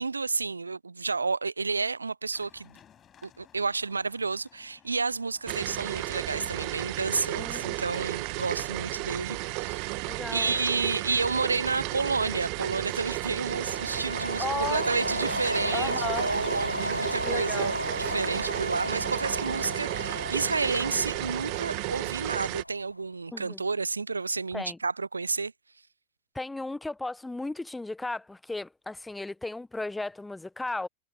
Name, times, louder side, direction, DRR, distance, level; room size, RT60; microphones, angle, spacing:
voice 1, 0.0-2.8 3.2-25.5, right 4 dB, 80° right, 0.7 m, -31 dB
sound 1, 2.3-17.3, left 9 dB, 25° left, 6.4 m, -53 dB
sound 2, 5.5-22.6, right 35 dB, 45° right, 1.6 m, -33 dB
voice 2, 7.4-7.8 9.4-9.5 10.1-10.6 14.4-14.9 15.7-16.3 17.2-17.7 23.3-23.6 24.5-24.8 26.3-30.9, left 2 dB, 5° left, 1.2 m, -35 dB
sound 3, 13.6-23.0, left 1 dB, 85° left, 0.8 m, -34 dB
figure-of-eight pair, 90°, 0 cm